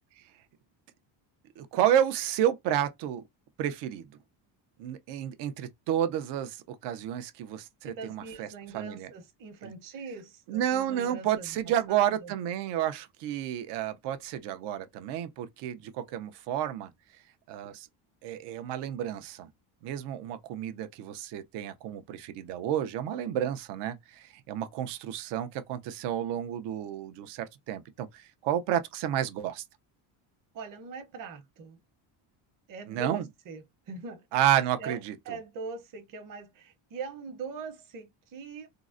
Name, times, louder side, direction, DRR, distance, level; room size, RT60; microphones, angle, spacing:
voice 1, 1.6-3.2 3.6-4.1 4.8-8.5 8.7-9.1 10.5-16.9 17.5-17.9 18.2-19.5 19.8-29.6 32.9-33.2 34.3-35.4, right 11 dB, 70° right, 0.7 m, -31 dB
voice 2, 7.8-11.5 11.9-12.3 30.5-31.8 32.7-34.2 34.8-35.0 35.2-38.7, right 4 dB, 50° right, 1.0 m, -42 dB
3.8 x 2.0 x 2.5 m
cardioid pair, 150°, 43 cm